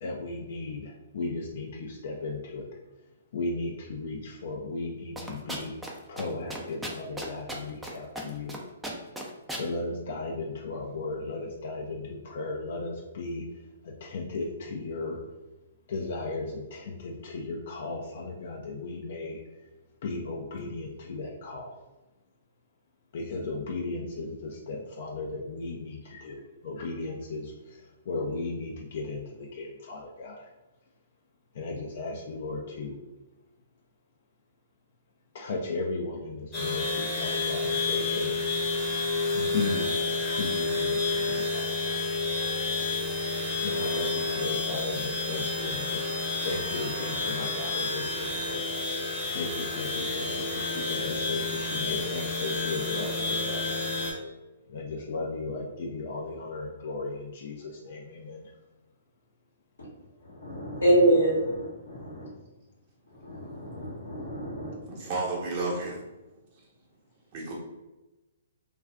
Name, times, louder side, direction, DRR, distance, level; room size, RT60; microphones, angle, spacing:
voice 1, 0.0-2.7 3.3-8.6 9.5-13.4 14.0-15.2 15.9-19.4 20.0-21.8 23.1-30.5 31.5-32.9 35.3-38.4 39.3-42.0 43.6-46.0 46.4-53.6 54.7-58.5, left 3 dB, 55° left, -1 dB, 0.4 m, -36 dB
sound 1, 5.2-5.9 6.2-6.3 6.5-7.9 8.1-8.6 8.8-9.6, right 1 dB, 5° right, 0.4 m, -35 dB
sound 2, 36.5-54.1, left 3 dB, 25° left, 0.8 m, -30 dB
voice 2, 60.3-62.3 63.2-64.8, right 1 dB, 75° left, -6 dB, 0.9 m, -26 dB
voice 3, 64.9-66.0 67.3-67.5, right 2 dB, 40° right, -4 dB, 0.9 m, -31 dB
2.4 x 2.4 x 2.3 m, 1.1 s
figure-of-eight pair, 125°, 0 cm